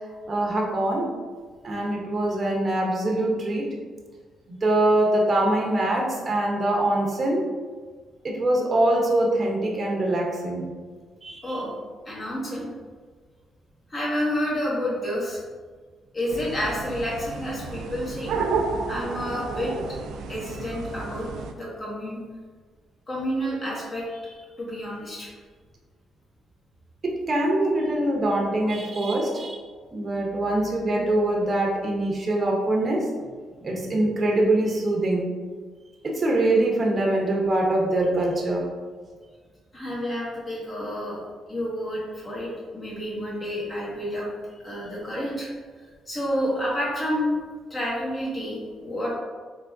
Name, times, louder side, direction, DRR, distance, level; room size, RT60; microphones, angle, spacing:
voice 1, 0.3-1.0 1.6-3.7 4.5-7.4 8.2-10.7 11.2-11.6 27.0-29.6 29.9-33.0 33.6-35.3 36.0-38.6, right 1 dB, 35° right, -1 dB, 0.7 m, -23 dB
voice 2, 12.0-12.7 13.9-15.4 16.1-18.3 18.9-19.7 20.3-21.3 21.5-22.2 23.1-25.3 39.7-41.2 41.5-44.3 44.6-45.5 46.1-47.4 47.7-49.1, equal, 35° left, -6 dB, 1.5 m, -29 dB
sound 1, 16.3-21.5, right 4 dB, 80° right, 0.3 m, -31 dB
3.4 x 3.2 x 2.5 m, 1.5 s
cardioid pair, 90°, 0 cm